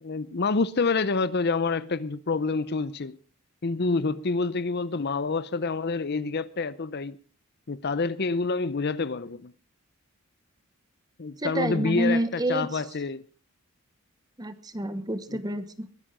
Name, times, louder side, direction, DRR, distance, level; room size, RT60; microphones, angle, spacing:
voice 1, 0.0-3.2 3.6-7.2 7.7-9.5 11.2-13.2 15.3-15.4, left 4 dB, 50° left, 0.6 m, -27 dB
voice 2, 11.4-12.8 14.4-15.9, right 1 dB, 15° right, 1.1 m, -28 dB
21.5 x 10.0 x 5.0 m
head